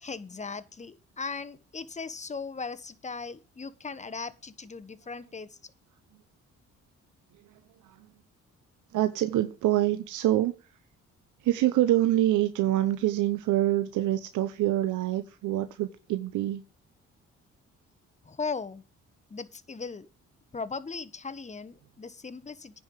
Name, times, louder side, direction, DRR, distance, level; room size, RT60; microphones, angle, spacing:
voice 1, 0.0-5.5 18.3-18.8 19.3-20.1 20.5-22.8, left 4 dB, 25° left, 1.1 m, -38 dB
voice 2, 8.9-10.5 11.4-16.6, right 14 dB, 85° right, 0.9 m, -26 dB
9.8 x 5.5 x 7.6 m
cardioid pair, 90°, 30 cm